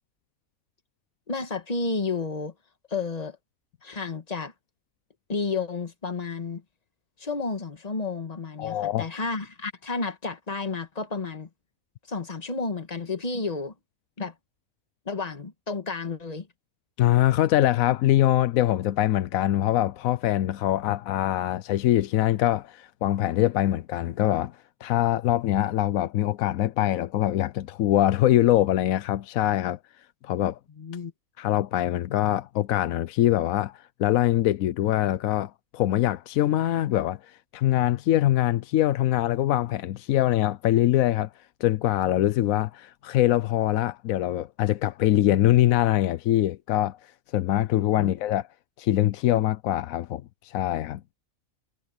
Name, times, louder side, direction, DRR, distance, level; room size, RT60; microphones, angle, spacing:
voice 1, 1.3-2.5 2.9-3.4 3.8-4.5 5.3-6.6 7.2-11.5 12.1-13.7 14.2-14.3 15.0-16.5 30.8-31.1 48.0-48.1, left 4 dB, 30° left, 1.4 m, -31 dB
voice 2, 8.6-9.0 17.0-29.8 30.2-30.6 31.4-41.3 41.6-48.5 48.8-51.0, left 13 dB, 80° left, 1.0 m, -23 dB
omnidirectional pair, 1.4 m